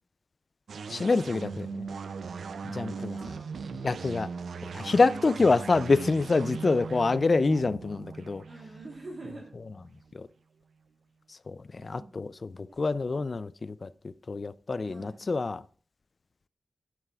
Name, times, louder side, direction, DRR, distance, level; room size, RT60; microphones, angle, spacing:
sound 1, 0.7-10.1, right 5 dB, 85° right, 0.4 m, -39 dB
voice 1, 0.9-1.9 2.6-3.2 3.8-4.3 4.6-8.4 10.1-10.3 11.3-15.7, left 3 dB, 40° left, 17 dB, 0.3 m, -27 dB
voice 2, 3.1-3.9 4.1-4.2 4.6-4.8 8.5-9.5 11.8-12.1 12.7-12.8 14.9-15.2, right 2 dB, 45° right, 0 dB, 1.3 m, -46 dB
11.0 x 8.8 x 2.3 m, 0.42 s
wide cardioid pair, 120°, 0 cm